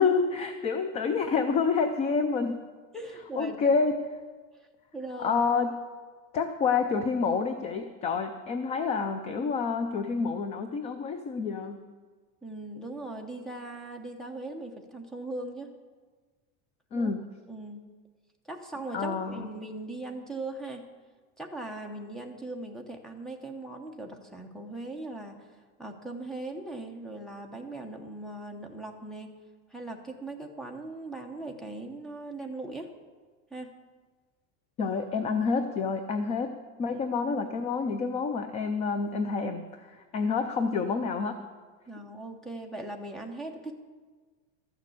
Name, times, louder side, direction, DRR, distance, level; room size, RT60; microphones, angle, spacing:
voice 1, 0.0-2.5 3.4-4.0 5.2-5.7 6.3-11.8 16.9-17.3 18.9-19.5 34.8-36.5 36.8-41.4, left 5 dB, 20° left, 8 dB, 0.3 m, -28 dB
voice 2, 2.9-3.7 4.9-5.5 12.4-15.7 16.9-17.1 17.5-17.8 18.5-20.9 21.4-25.5 25.8-29.3 29.7-32.9 33.5-33.7 36.9-37.0 41.9-43.7, right 2 dB, ahead, 3 dB, 0.9 m, -39 dB
13.5 x 6.6 x 8.1 m, 1.4 s
cardioid pair, 165°, 36 cm